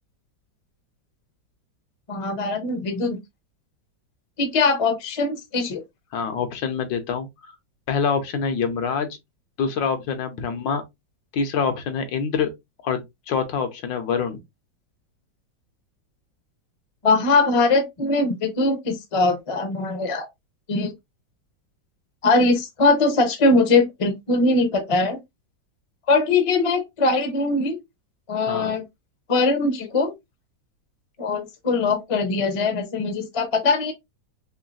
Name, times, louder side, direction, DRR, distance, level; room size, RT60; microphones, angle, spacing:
voice 1, 2.1-3.2 4.4-5.8 17.0-20.3 20.7-20.9 22.2-25.2 26.1-27.8 28.3-28.8 29.3-30.1 31.2-33.9, left 3 dB, 45° left, 0.4 m, -21 dB
voice 2, 6.1-7.3 7.9-9.2 9.6-10.8 11.3-12.5 12.8-14.4 28.5-28.7, left 6 dB, 85° left, 1.5 m, -25 dB
3.7 x 3.1 x 2.5 m
omnidirectional pair, 2.0 m